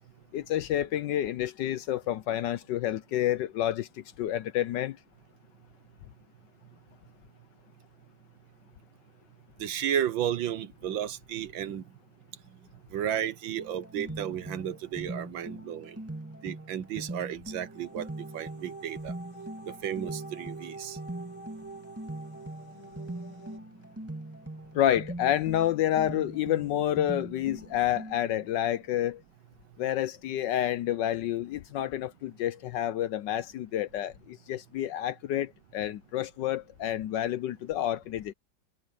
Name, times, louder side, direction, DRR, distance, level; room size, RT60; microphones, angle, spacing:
voice 1, 0.3-5.0 24.7-29.2 29.8-38.3, left 12 dB, 70° left, 1.1 m, -29 dB
voice 2, 9.6-11.8 12.9-16.0 16.4-18.1 18.3-19.1 19.7-21.0, right 10 dB, 70° right, 1.6 m, -33 dB
sound 1, 13.6-28.5, right 1 dB, 5° right, 2.0 m, -42 dB
sound 2, 17.5-23.6, right 3 dB, 45° left, 4.5 m, -46 dB
omnidirectional pair, 2.3 m